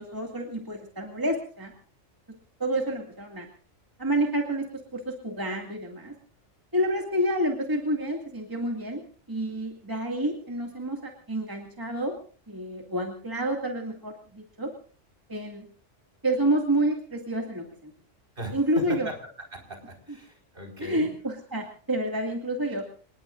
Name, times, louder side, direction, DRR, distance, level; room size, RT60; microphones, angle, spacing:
voice 1, 0.0-1.7 2.6-3.5 4.0-6.1 6.7-9.0 9.3-12.1 12.5-14.7 15.3-15.7 16.2-17.9 18.5-19.1 20.8-22.8, right 1 dB, 15° right, 1 dB, 2.3 m, -29 dB
voice 2, 18.4-21.1, right 1 dB, 45° right, 3 dB, 5.2 m, -39 dB
28.0 x 19.5 x 2.6 m, 0.41 s
omnidirectional pair, 1.3 m